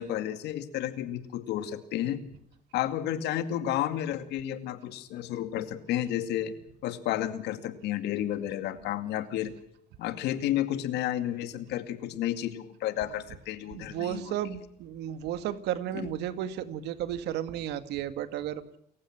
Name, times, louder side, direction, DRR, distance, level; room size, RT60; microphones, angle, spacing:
voice 1, 0.0-2.2 2.7-9.5 10.0-14.4 15.9-16.1, left 12 dB, 85° left, 11 dB, 2.2 m, -32 dB
voice 2, 13.7-18.6, right 11 dB, 85° right, 11 dB, 2.0 m, -33 dB
29.5 x 15.5 x 6.0 m, 0.72 s
cardioid pair, 110°, 17 cm